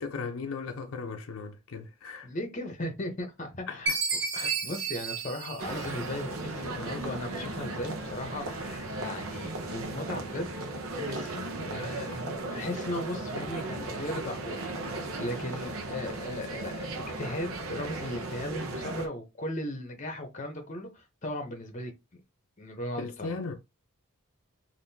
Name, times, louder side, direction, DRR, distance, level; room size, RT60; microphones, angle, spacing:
voice 1, 0.0-2.3 3.7-4.0 13.8-13.9 23.0-23.5, left 4 dB, 75° left, 0.5 m, -37 dB
voice 2, 2.2-3.9 4.3-10.5 11.0-21.9 22.6-23.4, left 1 dB, 35° left, 0.8 m, -37 dB
Chime, 3.9-6.4, right 4 dB, 50° right, 0.9 m, -32 dB
sound 1, 5.6-19.1, right 2 dB, 80° right, 0.7 m, -36 dB
Wind instrument woodwind instrument, 12.3-16.4, right 9 dB, 10° right, 1.7 m, -53 dB
3.6 x 2.6 x 2.7 m
head